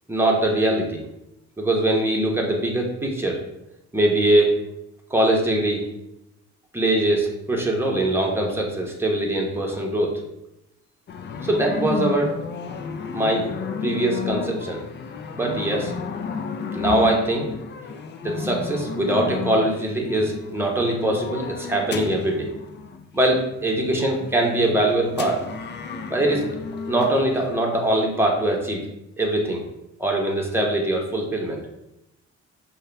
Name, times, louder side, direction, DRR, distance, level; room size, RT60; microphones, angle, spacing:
voice 1, 0.1-1.0 1.6-3.4 3.9-4.6 5.1-5.8 6.7-10.2 11.4-12.3 13.1-13.5 13.8-14.8 15.3-15.9 16.7-17.5 18.2-22.5 23.1-25.4 26.1-26.5 26.9-28.9 29.2-29.6 30.0-31.6, right 1 dB, 10° right, -1 dB, 0.9 m, -22 dB
sound 1, 11.1-27.6, left 5 dB, 35° left, 0.4 m, -32 dB
5.4 x 2.3 x 3.4 m, 0.87 s
cardioid pair, 90°, 30 cm